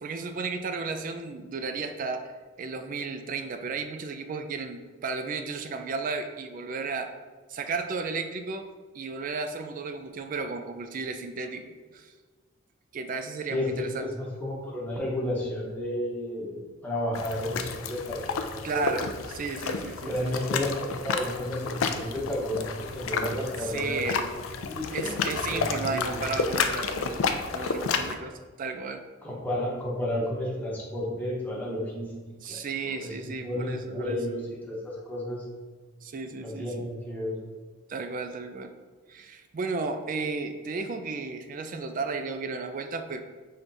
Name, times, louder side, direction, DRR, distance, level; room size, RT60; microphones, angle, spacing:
voice 1, 0.0-2.3 2.6-7.1 7.5-12.1 12.9-14.1 18.6-20.3 23.6-24.3 24.9-29.0 32.4-34.2 36.0-36.9 37.9-38.7 39.1-43.2, right 4 dB, 40° right, 7 dB, 0.3 m, -34 dB
voice 2, 13.5-18.8 20.0-26.2 29.2-32.1 32.5-35.4 36.4-37.4, left 1 dB, 10° left, -5 dB, 0.9 m, -32 dB
sound 1, 17.1-28.1, left 5 dB, 85° left, 0.4 m, -31 dB
5.6 x 3.4 x 2.6 m, 1.4 s
head